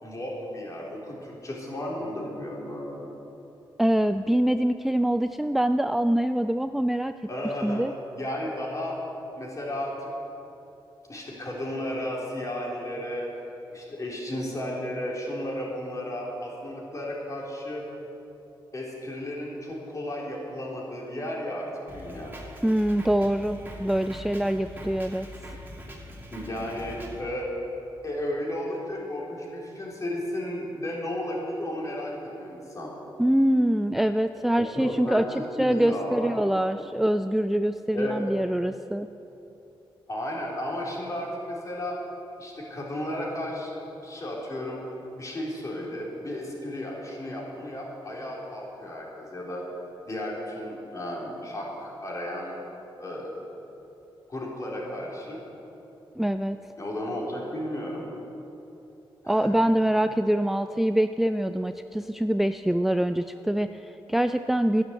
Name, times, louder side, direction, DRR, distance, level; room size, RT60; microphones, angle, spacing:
voice 1, 0.0-3.1 7.3-7.8 8.2-9.0 9.4-10.1 11.1-13.3 13.7-17.9 18.7-22.3 26.3-27.5 28.0-32.9 34.7-35.2 35.6-36.8 37.9-38.2 40.1-42.0 42.4-43.7 44.0-44.8 45.1-49.6 50.1-52.6 53.0-53.3 54.3-55.4 56.8-58.0 59.2-59.5, left 1 dB, 35° left, -3 dB, 3.9 m, -34 dB
voice 2, 3.8-7.2 7.6-7.9 22.6-25.3 33.2-35.2 35.6-39.1 56.2-56.6 59.3-64.8, right 1 dB, 5° right, 9 dB, 0.3 m, -24 dB
Drum kit, 21.9-27.2, equal, 20° right, 2.5 m, -42 dB
11.5 x 10.5 x 8.3 m, 3.0 s
cardioid pair, 85°, 9 cm